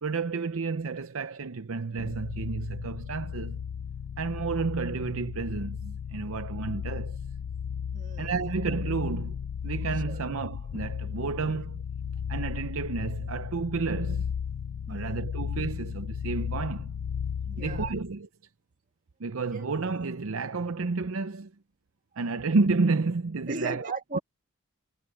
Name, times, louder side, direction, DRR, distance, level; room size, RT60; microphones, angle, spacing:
voice 1, 0.0-3.6 4.2-7.2 8.2-9.4 9.6-11.8 12.3-14.3 14.9-16.9 17.6-18.3 19.2-21.5 22.2-24.2, right 4 dB, 65° right, 0.6 m, -31 dB
sound 1, 2.0-18.1, left 7 dB, 85° left, 0.4 m, -35 dB
voice 2, 7.9-8.4 9.9-10.2 11.5-11.6 14.9-15.3 17.4-17.9 19.5-19.7 23.5-24.2, right 2 dB, 35° right, 2.1 m, -38 dB
head